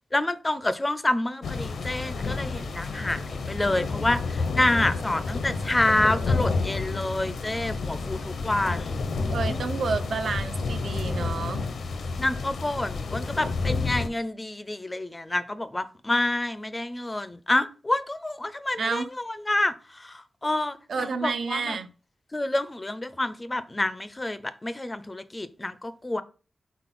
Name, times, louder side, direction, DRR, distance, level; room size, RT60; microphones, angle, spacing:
voice 1, 0.1-9.0 9.5-9.6 12.2-21.8 22.3-26.2, left 2 dB, 20° left, 0.4 m, -28 dB
sound 1, 1.4-14.1, left 4 dB, 80° left, 0.7 m, -30 dB
voice 2, 9.3-11.7 18.8-19.1 20.9-21.9, right 4 dB, 80° right, 0.6 m, -30 dB
4.2 x 4.1 x 5.6 m
wide cardioid pair, 145°, 0 cm